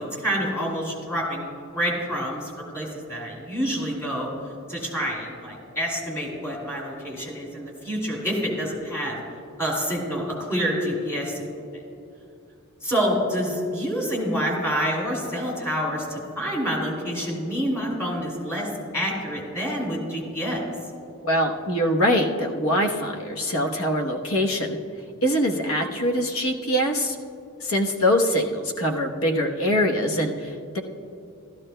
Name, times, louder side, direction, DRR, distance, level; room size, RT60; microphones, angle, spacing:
voice 1, 0.0-4.3 4.7-9.2 9.6-11.5 12.8-20.6, equal, 15° left, -2 dB, 2.4 m, -27 dB
voice 2, 21.2-24.8 25.2-27.2 27.6-30.8, equal, 75° left, 2 dB, 1.1 m, -23 dB
14.5 x 13.0 x 2.2 m, 2.7 s
head